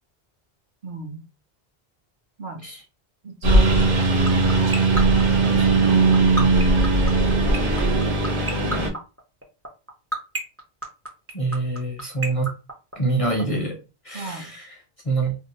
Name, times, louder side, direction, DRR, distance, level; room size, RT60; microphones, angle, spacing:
voice 1, 0.8-1.2 2.4-2.6 3.2-4.7 5.3-6.0 8.6-9.0 14.1-14.5, right 3 dB, 50° right, 1 dB, 0.8 m, -35 dB
Engine, 3.4-8.9, right 3 dB, 80° right, 1.2 m, -18 dB
sound 1, 3.8-13.4, right 1 dB, 20° right, 0.5 m, -28 dB
voice 2, 11.3-12.5 13.0-13.8 14.0-14.7 15.0-15.4, right 3 dB, 40° left, 1 dB, 0.6 m, -25 dB
2.6 x 2.1 x 4.0 m, 0.31 s
omnidirectional pair, 1.1 m